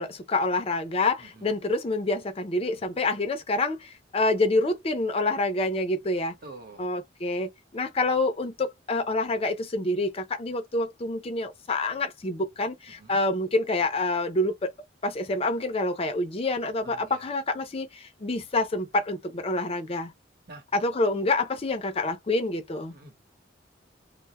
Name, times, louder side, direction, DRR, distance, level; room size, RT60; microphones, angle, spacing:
voice 1, 0.0-6.3 6.8-14.7 15.0-20.1 20.7-22.9, left 2 dB, 30° left, 0.5 m, -27 dB
voice 2, 1.2-1.5 6.4-6.9 13.0-13.2 16.8-17.2 20.5-20.6 22.9-23.2, right 2 dB, 50° right, 1.0 m, -46 dB
2.2 x 2.0 x 2.9 m
head